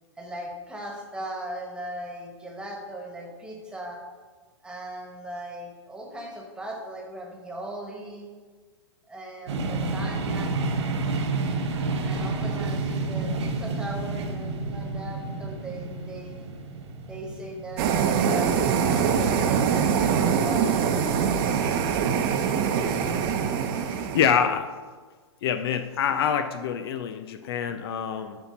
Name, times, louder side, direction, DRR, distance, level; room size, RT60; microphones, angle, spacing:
voice 1, 0.2-4.0 4.6-8.3 9.1-10.6 12.0-16.5 17.1-20.8, right 1 dB, 5° right, 0 dB, 1.5 m, -38 dB
sound 1, 9.5-21.3, right 3 dB, 70° right, 1.2 m, -30 dB
sound 2, 17.8-24.3, right 7 dB, 45° right, 0.8 m, -23 dB
voice 2, 23.9-24.7 25.4-28.4, left 8 dB, 55° left, 9 dB, 0.5 m, -26 dB
10.0 x 4.4 x 4.1 m, 1.4 s
hypercardioid pair, 120°, 15 cm